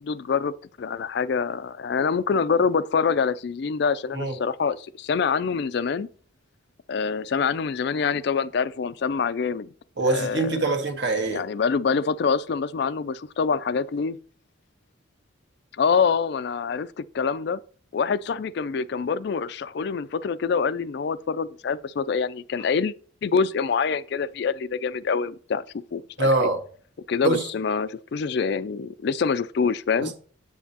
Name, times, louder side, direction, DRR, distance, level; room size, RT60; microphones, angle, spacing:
voice 1, 0.0-6.1 6.9-9.7 10.0-10.7 11.3-14.2 15.8-17.6 17.9-22.9 23.2-25.6 25.9-26.3 27.1-30.1, left 5 dB, 55° left, 0.3 m, -25 dB
voice 2, 10.0-11.4 26.2-26.6 27.2-27.4 30.0-30.1, right 2 dB, 60° right, 1.4 m, -23 dB
7.8 x 7.2 x 2.8 m
head